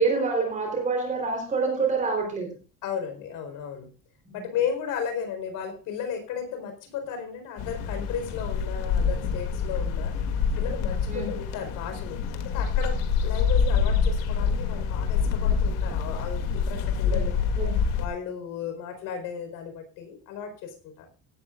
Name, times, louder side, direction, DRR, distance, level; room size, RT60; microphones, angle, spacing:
voice 1, 0.0-2.6 4.2-4.4 11.1-11.3 17.1-17.2 17.5-17.8, right 4 dB, 20° right, 3 dB, 3.9 m, -27 dB
voice 2, 2.8-3.9 4.3-10.1 10.6-17.4 18.0-21.1, left 7 dB, 60° left, 6 dB, 4.5 m, -34 dB
sound 1, 7.6-18.1, left 6 dB, 80° left, 2.6 m, -26 dB
17.0 x 12.5 x 2.5 m, 0.33 s
cardioid pair, 180°, 37 cm